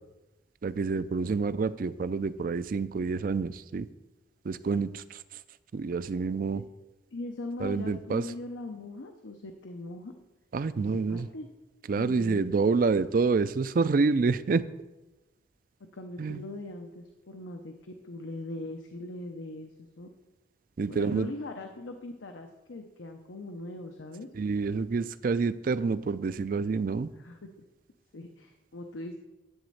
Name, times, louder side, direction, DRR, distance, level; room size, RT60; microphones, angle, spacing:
voice 1, 0.6-3.9 4.4-5.4 5.7-6.6 7.6-8.2 10.5-11.3 11.9-14.6 16.2-16.4 20.8-21.3 24.3-27.1, right 4 dB, 45° right, 15 dB, 0.4 m, -28 dB
voice 2, 7.1-10.1 10.8-11.5 12.0-12.5 15.9-20.1 20.9-24.3 27.2-27.4 28.1-29.2, left 2 dB, 85° left, 5 dB, 0.7 m, -40 dB
10.5 x 4.1 x 7.7 m, 1.1 s
head